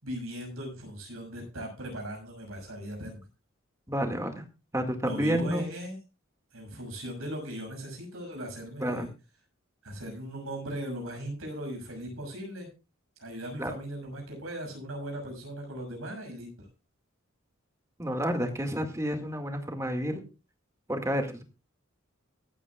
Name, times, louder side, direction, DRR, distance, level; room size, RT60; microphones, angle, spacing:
voice 1, 0.0-3.2 5.0-6.0 6.5-9.1 9.8-12.7 13.2-16.7, equal, 85° right, 2 dB, 6.4 m, -38 dB
voice 2, 3.9-4.4 4.7-5.6 8.8-9.1 13.6-13.7 18.0-20.2 20.9-21.4, equal, 15° right, 5 dB, 2.0 m, -30 dB
24.5 x 9.0 x 2.4 m, 0.29 s
head